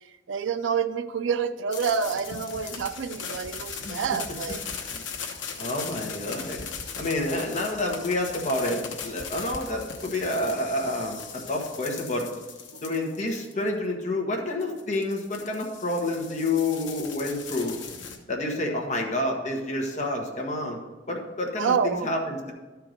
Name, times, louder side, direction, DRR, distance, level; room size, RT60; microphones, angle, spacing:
voice 1, 0.3-4.6 12.7-12.8 21.6-22.1, right 6 dB, 85° right, 9 dB, 0.5 m, -28 dB
sound 1, 1.7-13.7 14.6-18.2, left 6 dB, 80° left, 1.1 m, -39 dB
voice 2, 5.6-6.7 7.0-12.3 12.8-17.8 18.3-20.8 21.1-22.5, left 2 dB, 40° left, 0 dB, 1.5 m, -29 dB
12.5 x 4.7 x 5.2 m, 1.2 s
head